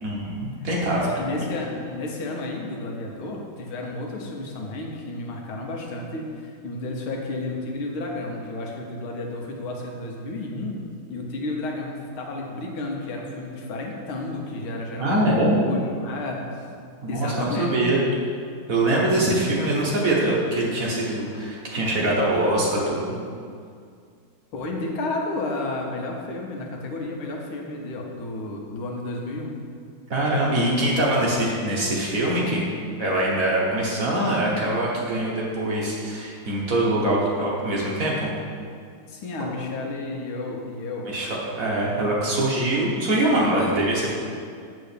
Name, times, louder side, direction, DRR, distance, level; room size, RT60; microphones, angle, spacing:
voice 1, 0.0-1.0 15.0-15.6 17.0-18.1 18.7-23.0 30.1-32.6 33.0-38.3 39.4-39.5 41.0-41.3 41.6-44.1, right 1 dB, 50° right, -4 dB, 1.4 m, -23 dB
voice 2, 0.9-10.8 11.1-15.2 15.5-16.6 17.1-17.8 19.5-19.9 24.5-29.6 39.1-41.1, left 2 dB, 90° left, 0 dB, 1.9 m, -32 dB
8.2 x 3.8 x 6.7 m, 2.2 s
omnidirectional pair, 2.2 m